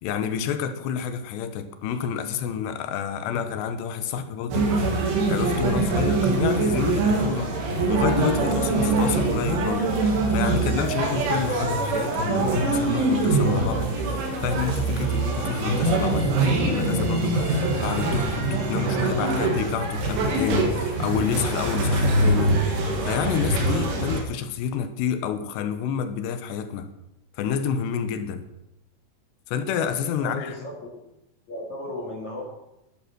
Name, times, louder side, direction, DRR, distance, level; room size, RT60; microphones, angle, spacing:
voice 1, 0.0-4.9 5.3-7.6 7.9-22.6 23.0-26.9 27.3-28.4 29.5-30.6, left 7 dB, 75° left, 2.6 m, -29 dB
sound 1, 4.5-24.2, right 2 dB, 70° right, 4.3 m, -23 dB
voice 2, 30.2-30.7 31.5-32.4, left 2 dB, 45° left, 2.8 m, -34 dB
12.0 x 11.0 x 5.9 m
omnidirectional pair, 5.9 m